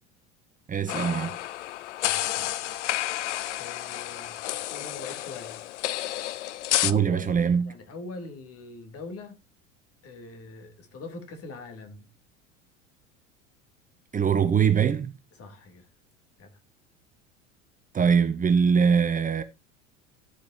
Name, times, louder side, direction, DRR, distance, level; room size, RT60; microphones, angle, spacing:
voice 1, 0.7-1.4 6.8-7.7 14.1-15.1 17.9-19.4, right 6 dB, 20° right, 1.0 m, -22 dB
sound 1, 0.9-6.9, left 14 dB, 65° left, 0.8 m, -30 dB
voice 2, 2.1-2.7 3.6-5.6 6.9-7.3 7.6-9.4 10.0-12.1 15.3-15.9 16.4-16.5, left 3 dB, 40° left, 3.2 m, -43 dB
13.0 x 8.4 x 2.8 m
figure-of-eight pair, 75°, 37 cm